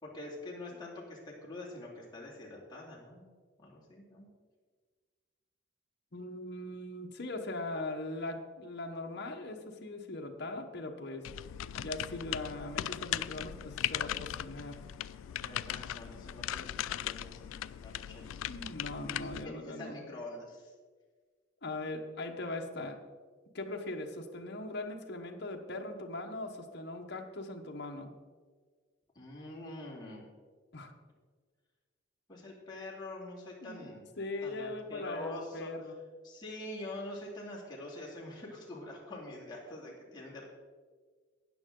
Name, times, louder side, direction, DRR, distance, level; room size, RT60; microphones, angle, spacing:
voice 1, 0.0-3.2 3.6-4.3 15.3-17.4 17.8-18.4 19.0-20.7 29.1-30.2 32.3-34.1 34.4-35.7 36.2-40.4, left 2 dB, 20° left, -4 dB, 2.5 m, -45 dB
voice 2, 6.1-11.3 11.8-14.8 18.5-20.1 21.6-23.0 23.5-28.1 30.7-30.9 33.6-33.9 34.2-36.0, left 2 dB, 55° left, 2 dB, 1.1 m, -40 dB
sound 1, 11.2-19.5, left 11 dB, 85° left, 0.3 m, -38 dB
13.5 x 9.2 x 3.8 m, 1.5 s
head